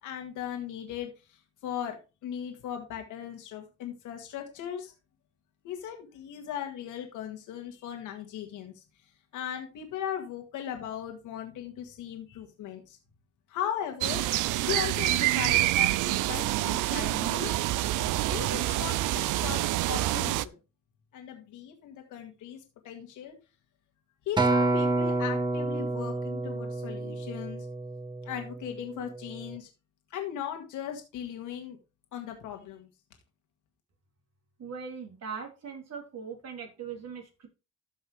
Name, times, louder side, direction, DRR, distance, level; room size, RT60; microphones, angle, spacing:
voice 1, 0.0-4.9 5.6-13.0 13.5-14.2 14.6-17.5 18.3-19.6 19.9-20.6 21.1-23.4 24.3-27.7 28.2-29.7 30.1-31.8 32.1-32.9, left 9 dB, 90° left, 3 dB, 1.9 m, -38 dB
sound 1, 14.0-20.4, right 16 dB, 90° right, 0.5 m, -27 dB
Acoustic guitar, 24.4-28.8 29.4-29.6, right 2 dB, 15° right, 1.8 m, -29 dB
voice 2, 34.6-37.5, right 6 dB, 55° right, 2 dB, 3.3 m, -40 dB
13.5 x 5.6 x 3.4 m, 0.29 s
cardioid pair, 90°, 30 cm